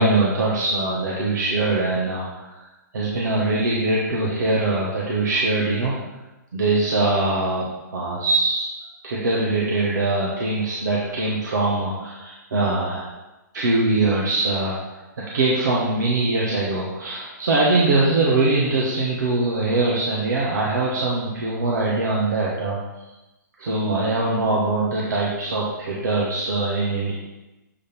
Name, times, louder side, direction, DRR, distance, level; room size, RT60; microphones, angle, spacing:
voice 1, 0.0-2.5 2.9-5.9 6.5-8.7 9.0-13.0 13.5-14.8 15.3-22.8 23.6-27.1, right 2 dB, 70° right, -5 dB, 1.4 m, -22 dB
7.5 x 3.4 x 4.4 m, 1.0 s
hypercardioid pair, 125°, 10 cm